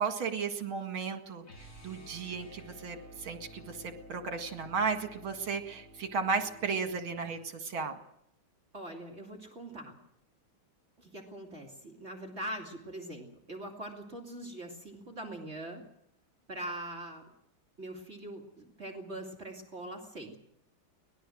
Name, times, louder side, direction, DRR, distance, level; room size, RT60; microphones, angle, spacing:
voice 1, 0.0-1.4 1.8-8.0, right 5 dB, 70° right, 6 dB, 2.8 m, -34 dB
sound 1, 1.4-7.5, right 1 dB, 35° left, 4.2 m, -53 dB
voice 2, 8.7-10.0 11.0-15.8 16.5-17.3 17.8-20.4, right 1 dB, 30° right, 1 dB, 2.8 m, -42 dB
24.0 x 19.0 x 6.4 m, 0.75 s
omnidirectional pair, 2.4 m